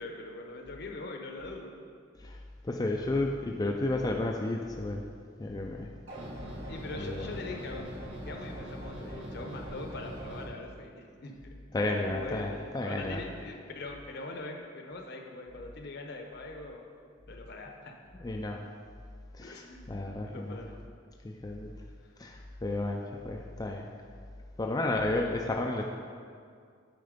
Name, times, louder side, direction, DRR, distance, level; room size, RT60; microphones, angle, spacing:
voice 1, 0.0-1.8 6.7-16.9 17.3-18.2 19.4-20.8 25.3-25.6, left 2 dB, 55° left, 3 dB, 0.8 m, -42 dB
voice 2, 2.2-5.0 5.4-5.9 7.0-7.4 11.7-13.2 18.2-18.7 19.3-20.6 21.2-21.9 22.2-23.9 24.6-25.8, left 2 dB, 20° left, 0 dB, 0.4 m, -32 dB
sound 1, 6.1-10.5, equal, 90° right, 2.0 m, -41 dB
9.3 x 4.4 x 5.1 m, 2.2 s
head